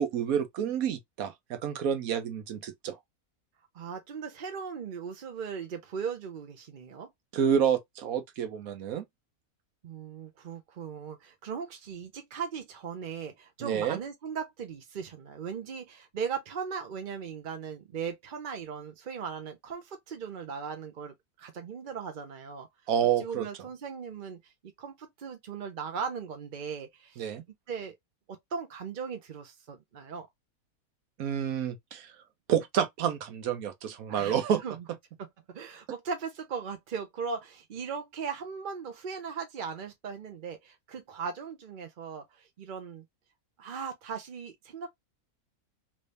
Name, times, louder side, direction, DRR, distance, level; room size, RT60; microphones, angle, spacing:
voice 1, 0.0-3.0 7.3-9.0 13.6-14.0 22.9-23.5 27.2-27.4 31.2-32.1 32.5-34.6, right 8 dB, 70° right, 1.2 m, -29 dB
voice 2, 3.7-7.1 9.8-22.7 23.2-24.5 24.8-27.3 27.7-28.0 28.3-30.3 34.1-34.8 35.5-43.0 43.6-44.9, right 6 dB, 50° right, 0.6 m, -38 dB
3.2 x 2.6 x 3.2 m
omnidirectional pair, 1.6 m